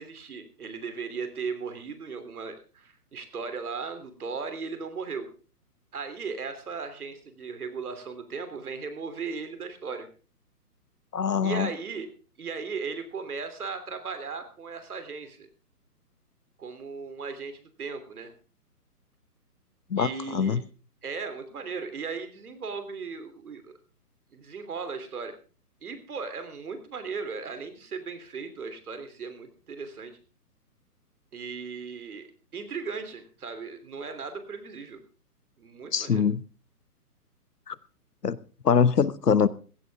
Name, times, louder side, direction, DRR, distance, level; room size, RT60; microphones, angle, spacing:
voice 1, 0.0-5.3 5.9-10.1 11.4-12.1 12.4-15.5 16.6-18.3 20.0-20.6 21.0-23.7 24.3-25.3 25.8-30.2 31.3-35.0 35.6-36.2, right 5 dB, 65° right, 3.2 m, -37 dB
voice 2, 11.1-11.7 19.9-20.6 35.9-36.4 37.7-37.8 38.2-38.4 38.6-39.5, left 6 dB, 85° left, 1.1 m, -23 dB
16.0 x 14.0 x 3.5 m
figure-of-eight pair, 140°, 47 cm